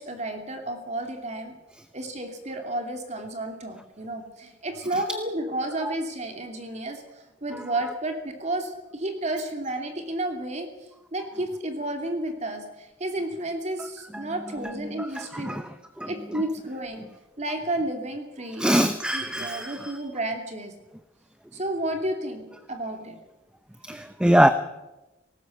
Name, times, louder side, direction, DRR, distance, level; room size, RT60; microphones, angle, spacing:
voice 1, 0.0-1.6 1.9-10.7 11.1-15.6 16.1-17.0 17.4-18.7 19.1-20.7 21.5-23.1, right 1 dB, 35° right, 4 dB, 2.8 m, -31 dB
voice 2, 14.6-15.6 16.0-16.4 18.6-20.0 23.8-24.5, equal, 5° right, 10 dB, 0.7 m, -24 dB
18.5 x 18.5 x 7.9 m, 1.0 s
head